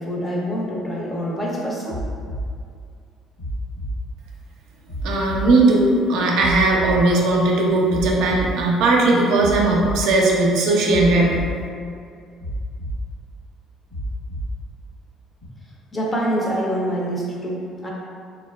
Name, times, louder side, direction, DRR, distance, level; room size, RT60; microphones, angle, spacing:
voice 1, 0.0-2.0 15.9-17.9, equal, 20° left, -4 dB, 0.5 m, -25 dB
sound 1, 1.9-2.5 3.4-4.0 4.9-5.5 6.4-7.0 7.9-8.5 9.4-10.0 10.9-11.5 12.4-13.0 13.9-14.5 15.4-15.5, right 1 dB, 70° left, 1.2 m, -29 dB
voice 2, 5.0-11.4, right 2 dB, 75° right, -2 dB, 0.4 m, -18 dB
2.9 x 2.3 x 2.2 m, 2.3 s
cardioid pair, 105°, 0 cm